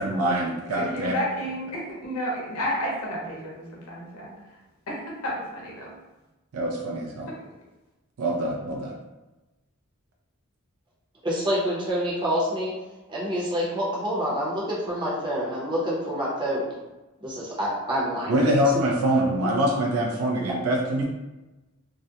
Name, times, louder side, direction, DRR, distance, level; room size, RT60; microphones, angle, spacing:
voice 1, 0.0-1.1 6.5-7.3 8.2-8.9 18.3-21.0, right 1 dB, 80° right, -1 dB, 0.4 m, -24 dB
voice 2, 0.7-4.3 4.9-5.9, equal, 85° left, -3 dB, 0.7 m, -31 dB
voice 3, 11.2-12.7 13.1-16.6 17.2-18.8, equal, 20° right, -6 dB, 0.6 m, -27 dB
2.4 x 2.0 x 2.7 m, 1.1 s
head